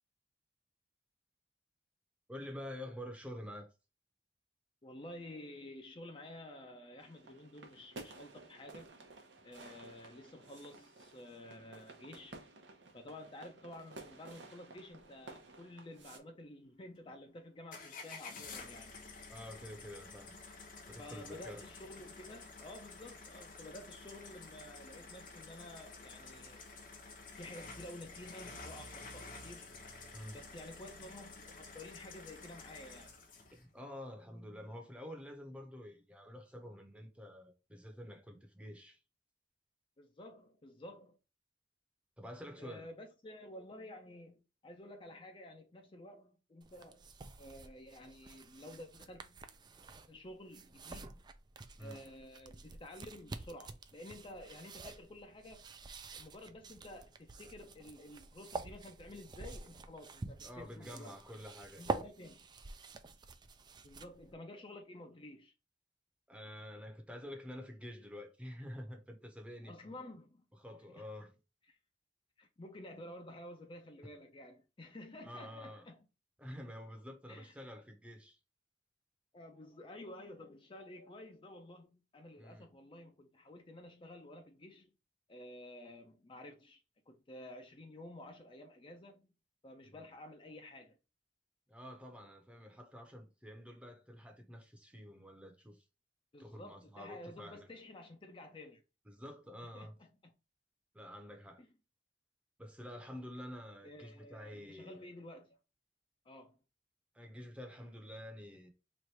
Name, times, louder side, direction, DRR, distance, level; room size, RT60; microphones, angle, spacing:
voice 1, 2.3-3.7 19.3-20.3 20.9-21.7 30.1-30.4 33.5-39.0 42.2-42.9 51.8-52.0 60.4-62.0 66.3-70.1 70.6-71.3 75.2-75.8 76.4-78.4 82.4-82.7 89.8-90.0 91.7-95.8 96.4-97.7 99.1-99.9 100.9-101.6 102.6-105.1 107.1-108.7, equal, 5° right, 0.8 m, -48 dB
voice 2, 4.8-8.9 9.4-12.4 12.9-19.0 21.0-26.6 27.4-29.7 30.3-33.1 40.0-41.2 42.6-47.1 47.4-49.4 50.1-51.3 51.8-55.7 56.1-61.2 61.8-62.5 63.8-65.5 69.7-70.5 70.9-71.0 71.7-71.8 72.4-76.0 77.3-77.5 79.3-84.9 85.3-89.3 89.6-91.0 96.3-98.8 99.7-100.3 101.6-101.7 103.8-105.6 106.2-106.5, left 1 dB, 30° left, 0.5 m, -51 dB
sound 1, 7.0-16.2, right 2 dB, 85° right, 0.9 m, -54 dB
sound 2, 17.7-33.6, left 3 dB, 50° left, 0.9 m, -51 dB
sound 3, 46.6-64.3, right 3 dB, 25° right, 0.4 m, -47 dB
3.2 x 2.5 x 4.2 m
head